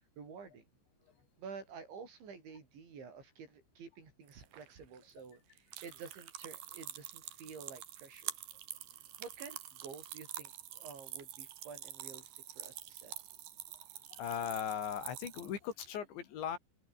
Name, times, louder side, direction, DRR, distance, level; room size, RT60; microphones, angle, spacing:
voice 1, 0.2-0.7 1.4-8.4 9.2-13.1, right 5 dB, 85° right, 8.6 m, -50 dB
sound 1, 4.3-16.0, right 12 dB, 60° right, 3.2 m, -47 dB
voice 2, 14.2-16.6, left 8 dB, 80° left, 5.6 m, -38 dB
open air
omnidirectional pair, 5.2 m